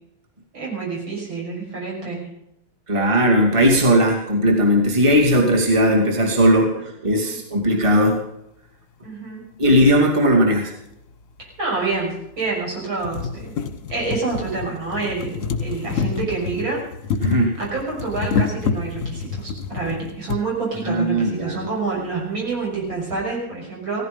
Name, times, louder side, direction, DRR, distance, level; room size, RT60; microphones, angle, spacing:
voice 1, 0.5-2.2 7.1-7.4 9.0-9.4 11.4-13.6 13.9-16.8 17.2-24.1, right 3 dB, 65° right, -4 dB, 7.1 m, -27 dB
voice 2, 2.9-8.2 9.6-10.7 17.2-17.5 20.9-21.6, equal, 15° right, 0 dB, 2.5 m, -17 dB
sound 1, 10.9-11.0 11.9-12.0 12.5-12.6 12.8-20.4 21.3-21.4 21.7-21.8, left 5 dB, 45° left, 1.4 m, -27 dB
17.0 x 15.0 x 5.3 m, 0.79 s
omnidirectional pair, 2.3 m